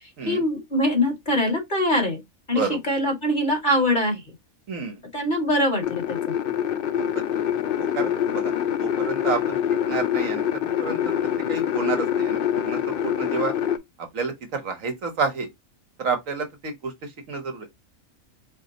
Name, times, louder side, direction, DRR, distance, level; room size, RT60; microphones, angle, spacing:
voice 1, 0.3-2.2 2.5-4.2 5.1-6.4, left 1 dB, 35° left, 1.9 m, -23 dB
voice 2, 4.7-5.0 6.9-7.2 7.7-8.5 8.8-9.6 9.9-11.1 11.5-13.5 14.0-15.5 16.0-17.7, right 5 dB, 70° right, 1.4 m, -30 dB
sound 1, 5.8-13.8, left 9 dB, 60° left, 0.6 m, -25 dB
4.4 x 2.3 x 3.8 m
omnidirectional pair, 1.4 m